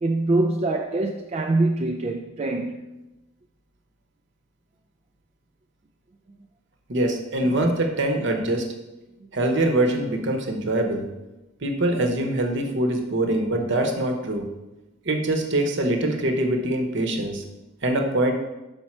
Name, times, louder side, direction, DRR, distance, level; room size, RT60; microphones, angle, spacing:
voice 1, 0.0-2.8, right 2 dB, 30° right, 0.3 m, -24 dB
voice 2, 6.9-8.7 9.3-11.1 11.6-14.5 15.0-17.4 17.8-18.3, right 1 dB, 55° right, 0.9 m, -23 dB
5.9 x 5.4 x 4.3 m
head